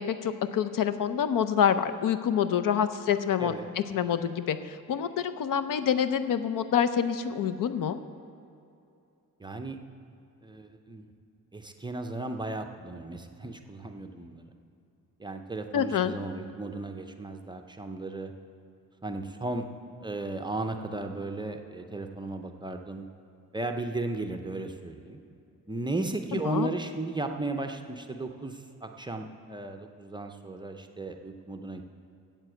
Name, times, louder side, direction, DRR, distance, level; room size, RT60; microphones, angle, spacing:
voice 1, 0.0-8.0 15.7-16.1 26.3-26.7, left 8 dB, 70° left, 12 dB, 0.6 m, -27 dB
voice 2, 9.4-9.8 10.4-11.1 11.5-14.4 15.2-18.3 19.0-19.6 20.0-23.1 23.5-25.2 25.7-31.8, right 2 dB, 15° right, 5 dB, 0.5 m, -35 dB
9.4 x 7.8 x 7.7 m, 2.6 s
wide cardioid pair, 145°, 34 cm